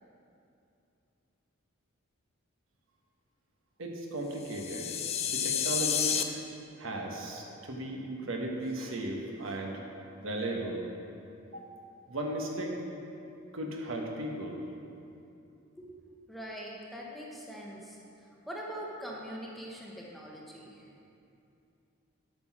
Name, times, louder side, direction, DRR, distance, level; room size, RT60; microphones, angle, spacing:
voice 1, 3.8-4.9 5.3-6.4 6.8-9.8 10.2-10.8 11.5-11.7 12.1-12.7 13.5-14.6, right 1 dB, 70° right, 0 dB, 1.2 m, -36 dB
sound 1, 4.4-6.2, left 8 dB, 30° left, 0.4 m, -30 dB
voice 2, 16.3-20.9, equal, ahead, -4 dB, 1.0 m, -43 dB
8.7 x 5.9 x 6.1 m, 2.7 s
head